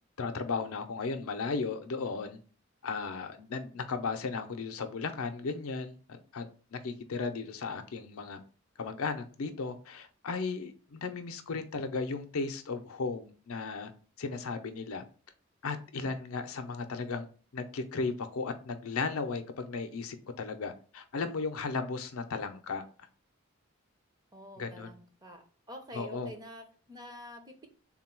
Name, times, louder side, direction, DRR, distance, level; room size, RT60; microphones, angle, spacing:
voice 1, 0.2-2.4 2.8-8.4 8.8-13.9 14.2-15.0 15.6-17.3 17.5-22.8 24.6-24.9 25.9-26.3, left 4 dB, 85° left, 8 dB, 0.5 m, -35 dB
voice 2, 24.3-25.4 25.7-27.7, equal, 20° right, 4 dB, 0.6 m, -47 dB
3.6 x 2.2 x 4.4 m, 0.39 s
head